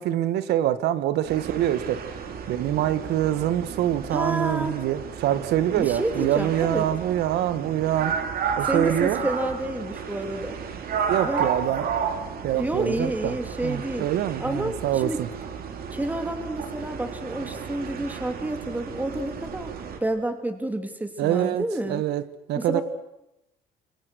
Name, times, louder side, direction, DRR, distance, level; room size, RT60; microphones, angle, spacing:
voice 1, 0.0-2.0 2.5-8.2 8.6-9.2 11.1-11.9 12.4-13.3 13.6-15.3 21.2-22.2 22.5-22.8, right 12 dB, 80° right, 15 dB, 1.4 m, -25 dB
sound 1, 1.2-20.0, right 6 dB, 60° right, 3.1 m, -33 dB
voice 2, 4.1-4.7 5.8-6.8 8.6-10.6 11.2-11.5 12.5-14.1 14.4-15.2 15.9-19.7 20.0-22.0 22.6-22.8, right 1 dB, 10° right, 7 dB, 2.9 m, -29 dB
28.5 x 25.0 x 6.3 m, 0.89 s
cardioid pair, 110°, 17 cm